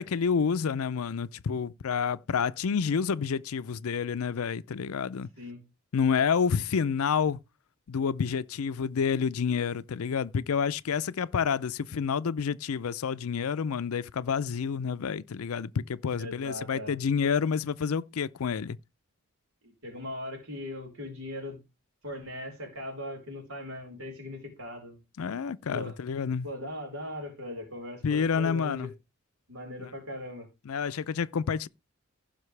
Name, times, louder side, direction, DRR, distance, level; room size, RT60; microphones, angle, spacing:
voice 1, 0.0-5.3 5.9-7.4 7.9-18.8 25.2-26.5 28.0-28.9 29.8-29.9 30.7-31.7, left 6 dB, 80° left, 0.5 m, -29 dB
voice 2, 16.2-17.0 19.6-21.6 22.0-25.0 25.7-26.0 26.4-28.9 29.5-30.5, left 1 dB, 80° right, 4.8 m, -39 dB
15.5 x 5.9 x 3.3 m
head